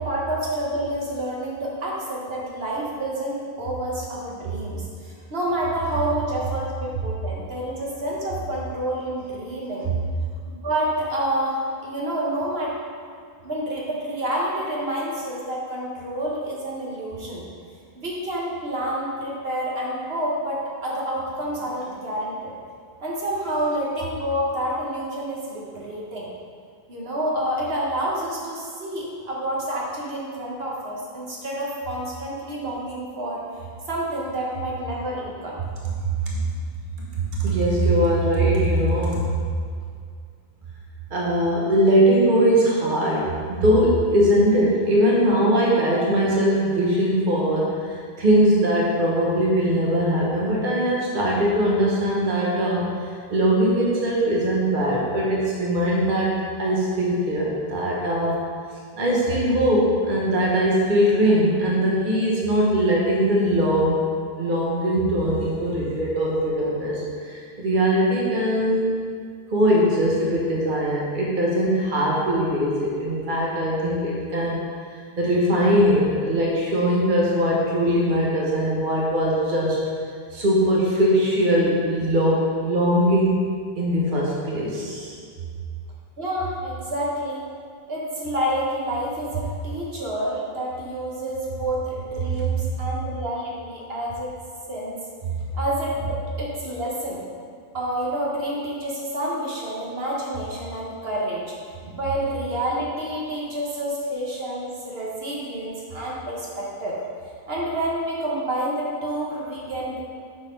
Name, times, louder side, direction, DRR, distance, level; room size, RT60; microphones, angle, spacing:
voice 1, 0.0-9.9 10.5-12.8 13.4-17.4 17.9-22.5 23.0-26.3 26.9-33.4 33.9-35.6 86.2-87.4 87.9-94.4 94.7-95.0 95.5-97.2 97.7-101.5 102.0-107.0 107.5-110.0, right 1 dB, 75° right, -4 dB, 1.4 m, -28 dB
voice 2, 37.3-39.3 41.1-52.9 53.3-56.3 56.6-58.4 59.0-64.0 64.4-68.9 69.5-74.6 75.2-79.8 80.3-83.4 83.8-85.1 101.8-101.9, equal, 55° right, -4 dB, 1.3 m, -21 dB
7.5 x 4.1 x 5.2 m, 2.2 s
omnidirectional pair, 1.0 m